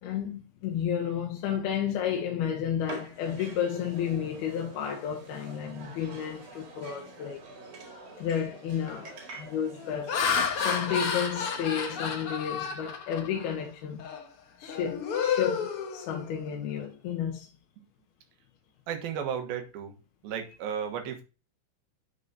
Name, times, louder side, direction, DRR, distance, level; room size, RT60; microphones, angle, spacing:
voice 1, 0.0-7.4 8.2-9.1 9.4-10.1 10.6-14.1 14.6-17.5, left 8 dB, 85° left, 3.1 m, -32 dB
sound 1, 2.9-12.1, right 3 dB, 50° right, 2.7 m, -47 dB
Laughter, 8.0-8.3 8.8-9.1 9.7-13.6 14.0-14.2 14.6-16.6, left 6 dB, 65° left, 1.4 m, -31 dB
voice 2, 18.9-20.0 20.2-21.2, right 8 dB, 75° right, 3.1 m, -34 dB
11.5 x 5.3 x 2.7 m
omnidirectional pair, 4.5 m